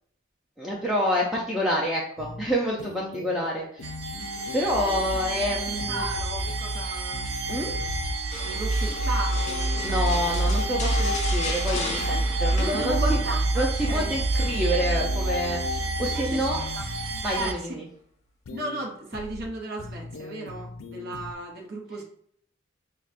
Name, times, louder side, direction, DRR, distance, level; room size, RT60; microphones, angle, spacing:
voice 1, 0.6-3.9 4.2-4.3 4.5-6.0 7.5-7.7 9.8-13.0 13.6-16.6 17.2-17.8, equal, 5° right, -4 dB, 0.4 m, -28 dB
sound 1, 2.2-2.5 2.8-3.5 3.8-4.8 5.1-5.5 5.8-6.8 7.1-8.1 9.5-11.1 11.8-12.1 12.8-13.5 13.8-15.8 16.1-17.5 18.4-18.8 19.1-19.5 19.8-21.3, left 3 dB, 85° left, 0.5 m, -41 dB
sound 2, 3.8-17.5, right 2 dB, 90° right, 0.5 m, -27 dB
voice 2, 4.7-5.0 5.7-7.2 8.4-10.3 12.1-14.1 15.5-15.6 16.0-16.5 16.8-17.7 18.5-22.0, right 2 dB, 55° right, 0 dB, 0.7 m, -35 dB
sound 3, 8.3-13.3 13.6-13.9 14.4-15.4 16.5-17.0 17.5-17.7, left 3 dB, 35° left, 0.7 m, -37 dB
5.6 x 2.2 x 2.5 m, 0.63 s
head